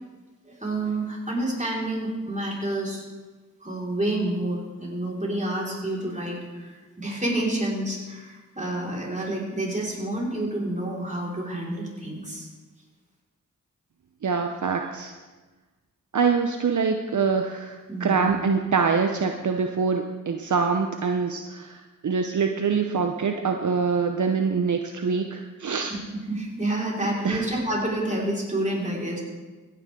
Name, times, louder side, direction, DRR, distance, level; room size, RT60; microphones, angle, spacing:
voice 1, 0.4-3.0 3.6-12.5 17.9-18.3 26.1-29.2, right 1 dB, 25° right, -5 dB, 4.8 m, -29 dB
voice 2, 14.2-15.2 16.1-21.8 22.0-25.9 27.2-27.4, right 5 dB, 65° right, 4 dB, 0.8 m, -24 dB
16.0 x 10.5 x 3.8 m, 1.3 s
cardioid pair, 45°, 33 cm